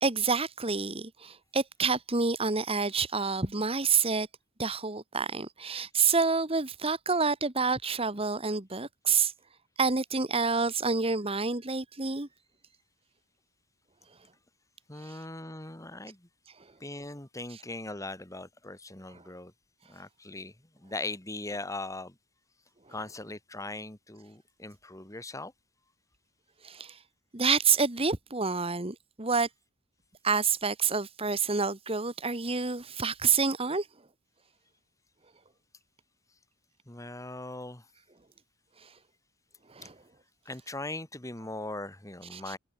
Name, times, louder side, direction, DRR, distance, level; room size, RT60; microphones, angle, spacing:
voice 1, 0.0-4.3 4.6-9.3 9.8-12.3 15.0-15.2 26.6-27.0 27.3-29.5 30.2-33.9 38.8-38.9 39.7-39.9 42.3-42.5, right 5 dB, 25° right, 1.6 m, -28 dB
voice 2, 14.9-16.3 16.8-19.5 19.9-22.1 22.9-25.5 36.9-37.9 40.5-42.6, left 2 dB, 15° left, 2.1 m, -40 dB
head